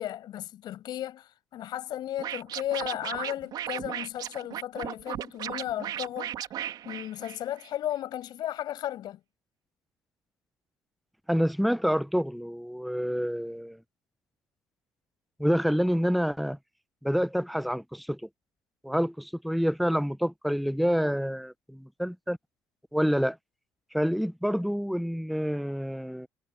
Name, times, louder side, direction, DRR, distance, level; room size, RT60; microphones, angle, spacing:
voice 1, 0.0-6.4 6.8-9.2, left 12 dB, 70° left, 7.2 m, -35 dB
Scratching (performance technique), 2.2-7.7, right 11 dB, 65° right, 3.8 m, -36 dB
voice 2, 11.3-13.8 15.4-16.6 17.0-18.2 18.8-22.4 22.9-23.4 23.9-26.3, equal, ahead, 1.1 m, -27 dB
supercardioid pair, 65°, 8 cm